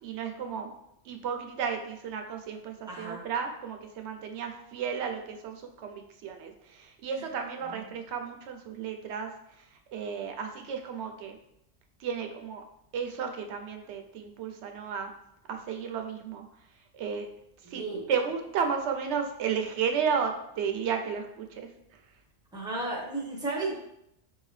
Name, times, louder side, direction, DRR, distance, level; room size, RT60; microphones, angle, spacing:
voice 1, 0.0-0.7 1.1-9.3 9.9-11.4 12.0-12.6 12.9-15.1 15.5-16.4 16.9-17.3 17.7-21.7, right 6 dB, 85° right, 4 dB, 0.9 m, -33 dB
voice 2, 2.9-3.2 7.6-7.8 17.6-18.1 22.5-23.8, right 2 dB, 5° right, -2 dB, 0.8 m, -34 dB
4.9 x 2.8 x 3.2 m, 0.78 s
omnidirectional pair, 1.1 m